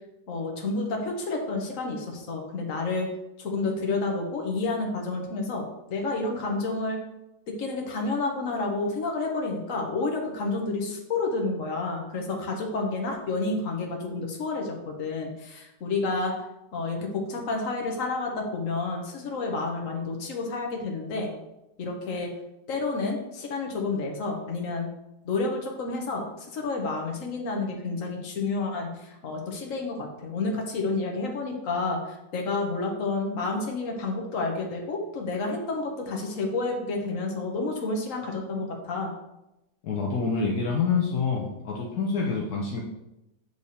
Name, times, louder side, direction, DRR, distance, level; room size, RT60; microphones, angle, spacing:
voice 1, 0.3-3.1 3.4-5.6 5.9-7.0 7.5-16.3 16.7-21.3 21.8-22.3 22.7-24.9 25.2-26.3 26.5-39.1, left 3 dB, 55° left, 1 dB, 1.5 m, -30 dB
voice 2, 39.8-42.8, left 5 dB, 70° left, -2 dB, 1.3 m, -27 dB
8.0 x 3.4 x 4.2 m, 0.91 s
omnidirectional pair, 1.8 m